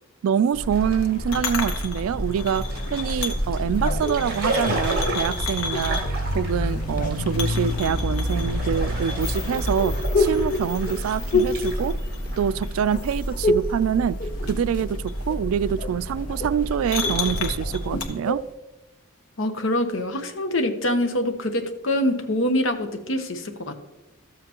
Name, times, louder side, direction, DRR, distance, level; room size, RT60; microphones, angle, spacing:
voice 1, 0.2-6.0 6.3-11.9 12.4-14.2 14.4-15.0 15.3-18.4, right 8 dB, 80° right, 0.3 m, -25 dB
sound 1, 0.5-18.0, left 1 dB, 90° left, 1.2 m, -29 dB
sound 2, 0.7-13.3, right 2 dB, 45° right, 2.0 m, -35 dB
sound 3, 3.8-6.0 6.7-7.6 8.6-12.6 12.9-13.8 14.1-15.0 15.3-18.5, left 2 dB, 40° left, 0.5 m, -28 dB
voice 2, 19.4-23.7, left 1 dB, 65° left, 1.0 m, -25 dB
13.0 x 7.5 x 2.9 m
head